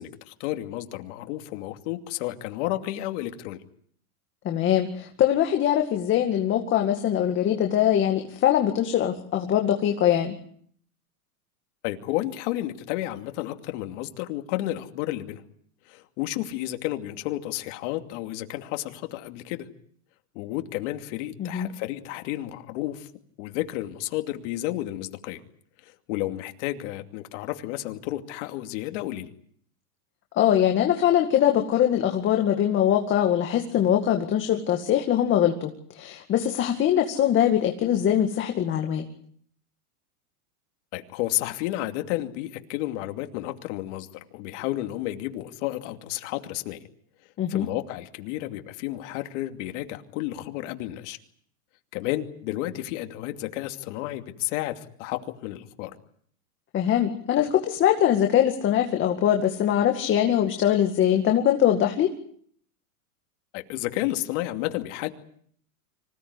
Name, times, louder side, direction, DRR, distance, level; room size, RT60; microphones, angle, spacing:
voice 1, 0.0-3.6 11.8-15.4 15.9-19.7 20.3-23.1 23.4-25.4 25.8-29.3 40.9-44.1 44.3-46.8 47.5-51.2 51.9-55.9 63.5-65.1, left 15 dB, 50° left, 6 dB, 2.7 m, -31 dB
voice 2, 4.4-10.3 21.4-21.7 30.4-39.1 47.4-47.7 56.7-62.1, left 10 dB, 25° left, 4 dB, 2.1 m, -22 dB
25.5 x 17.5 x 9.8 m, 0.63 s
supercardioid pair, 145°, 45 cm